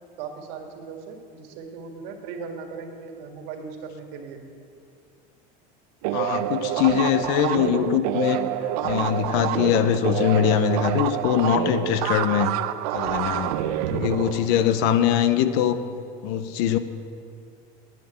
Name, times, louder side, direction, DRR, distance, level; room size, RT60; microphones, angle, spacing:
voice 1, 0.2-4.4 14.1-14.3, right 5 dB, 65° right, 4 dB, 1.9 m, -38 dB
sound 1, 6.0-15.2, right 12 dB, 85° right, 0.6 m, -27 dB
voice 2, 6.1-8.4 8.8-12.5 12.9-13.6 13.9-15.8 16.2-16.8, left 9 dB, 65° left, 11 dB, 0.8 m, -22 dB
10.0 x 9.1 x 8.9 m, 2.3 s
cardioid pair, 155°, 19 cm